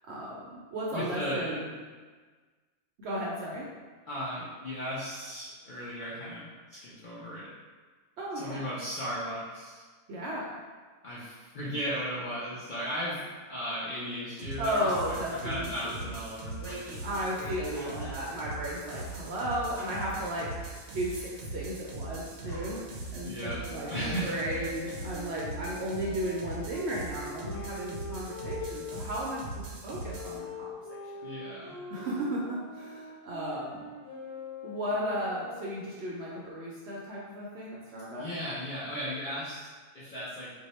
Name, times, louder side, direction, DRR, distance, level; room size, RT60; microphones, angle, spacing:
voice 1, 0.1-1.7 3.0-3.7 8.2-8.6 10.1-10.5 14.6-16.0 17.0-31.0 31.9-33.9 34.6-38.3, equal, 65° right, -5 dB, 0.7 m, -35 dB
voice 2, 0.9-1.6 4.1-7.5 8.3-9.8 11.0-13.2 13.5-16.9 23.2-23.6 23.9-24.4 31.2-31.8 38.2-40.5, equal, 50° left, -9 dB, 0.6 m, -36 dB
sound 1, 14.4-30.4, right 3 dB, 80° right, 1.0 m, -41 dB
sound 2, 16.6-18.4 18.7-18.8 19.8-20.7 21.1-21.7 22.1-22.2 22.5-22.9 23.3-23.4, equal, 5° left, 0.3 m, -45 dB
Wind instrument woodwind instrument, 23.4-29.3 30.1-35.8, left 2 dB, 80° left, 1.4 m, -43 dB
2.7 x 2.1 x 4.0 m, 1.4 s
omnidirectional pair, 1.5 m